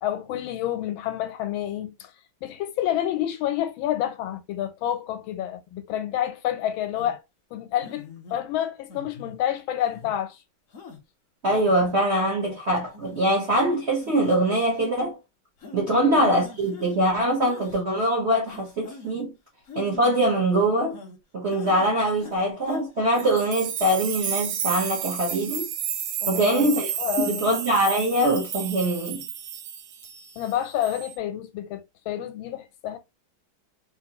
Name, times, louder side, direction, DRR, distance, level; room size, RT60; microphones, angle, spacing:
voice 1, 0.0-2.1 2.4-7.2 7.5-10.4 15.9-16.3 26.2-27.5 30.4-33.0, left 11 dB, 80° left, 1.4 m, -29 dB
sound 1, 7.0-7.2 7.8-8.4 8.9-9.4 9.9-10.2 10.7-11.0 11.5-11.9 12.5-12.6 12.9-13.1 13.5-13.6 14.0-14.4 14.7-14.9 15.6-15.8 16.4-16.9 17.4-17.8 18.5-19.2 19.7-21.2 21.5-21.9 22.2-22.8 23.1-23.3, left 4 dB, 55° left, 0.9 m, -44 dB
voice 2, 11.4-15.2 15.7-19.3 19.7-21.0 21.3-25.7 26.3-26.9 27.2-29.2, right 1 dB, 55° right, 0.7 m, -23 dB
sound 2, 23.2-30.5 30.8-31.2, right 9 dB, 80° right, 1.5 m, -32 dB
4.1 x 2.6 x 2.9 m
omnidirectional pair, 2.2 m